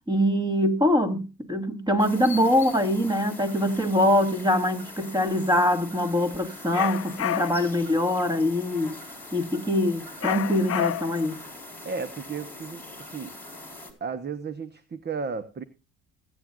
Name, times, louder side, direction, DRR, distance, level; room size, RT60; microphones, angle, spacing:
voice 1, 0.1-9.0 9.3-11.4, left 1 dB, 10° right, 2.4 m, -23 dB
sound 1, 2.0-13.9, left 2 dB, 5° left, 4.3 m, -43 dB
sound 2, 6.7-7.7 10.2-11.3, left 11 dB, 40° left, 0.7 m, -29 dB
voice 2, 11.8-13.3 14.0-15.6, right 5 dB, 30° right, 1.0 m, -34 dB
21.0 x 9.4 x 2.5 m
supercardioid pair, 85°, 36 cm